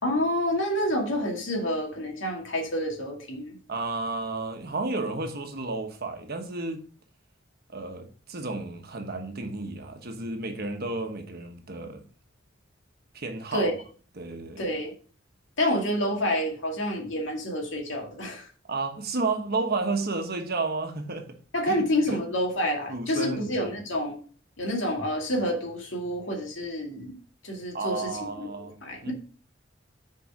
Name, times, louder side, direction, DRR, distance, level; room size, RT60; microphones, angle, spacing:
voice 1, 0.0-3.6 13.5-13.7 14.6-14.9 15.6-18.5 21.5-24.2 24.6-27.2 27.4-28.1 28.8-29.1, equal, 75° left, 2.1 m, -28 dB
voice 2, 3.7-6.8 7.7-12.0 13.1-13.7 14.2-14.7 18.7-21.4 21.7-22.2 22.9-23.7 27.7-29.1, right 3 dB, 55° right, 1.2 m, -32 dB
6.8 x 4.7 x 4.8 m
head